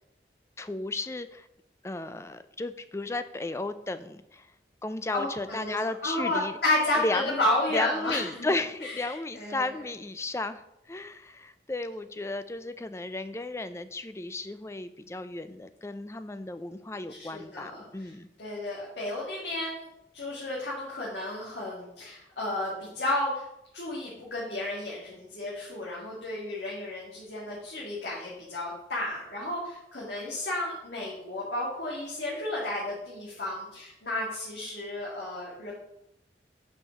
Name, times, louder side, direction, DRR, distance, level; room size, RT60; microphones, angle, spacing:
voice 1, 0.6-1.5 1.8-4.5 4.8-6.6 7.0-7.4 7.7-10.6 10.9-18.3, left 2 dB, 15° left, 11 dB, 0.4 m, -34 dB
voice 2, 5.1-8.5 8.8-9.7 17.1-18.1 18.4-19.9 20.1-23.5 23.7-35.8, left 1 dB, 75° left, -6 dB, 2.2 m, -32 dB
5.7 x 5.5 x 6.4 m, 0.82 s
head